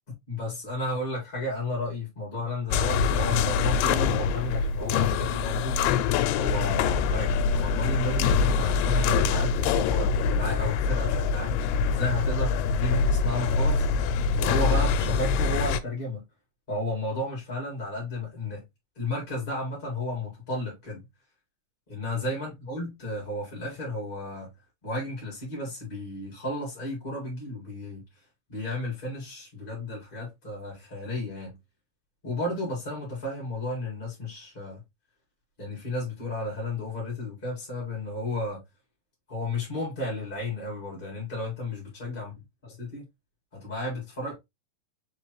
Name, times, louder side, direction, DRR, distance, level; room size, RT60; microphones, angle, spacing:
voice 1, 0.3-5.7 6.3-13.9 14.3-16.2 16.7-18.6 18.9-21.0 21.9-24.5 24.8-28.0 28.5-31.6 32.2-34.8 35.6-38.6 39.3-42.3 42.8-43.0 43.5-44.4, left 2 dB, 20° left, 1.5 m, -33 dB
sound 1, 2.7-15.8, left 5 dB, 85° left, 2.2 m, -24 dB
4.9 x 3.6 x 3.0 m
omnidirectional pair, 3.9 m